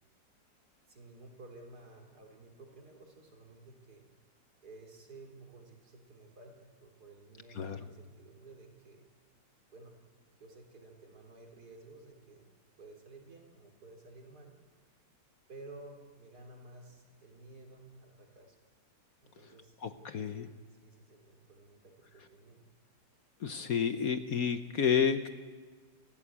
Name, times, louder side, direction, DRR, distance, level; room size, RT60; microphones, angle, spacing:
voice 1, 0.9-4.0 4.6-9.0 9.7-9.9 10.3-12.5 12.8-14.6 15.5-18.6 19.2-19.8 20.7-22.7, right 2 dB, 55° right, 2 dB, 3.9 m, -53 dB
voice 2, 7.5-7.9 19.8-20.5 23.4-25.3, left 7 dB, 55° left, 9 dB, 1.2 m, -30 dB
29.0 x 14.0 x 8.6 m, 1.5 s
omnidirectional pair, 2.0 m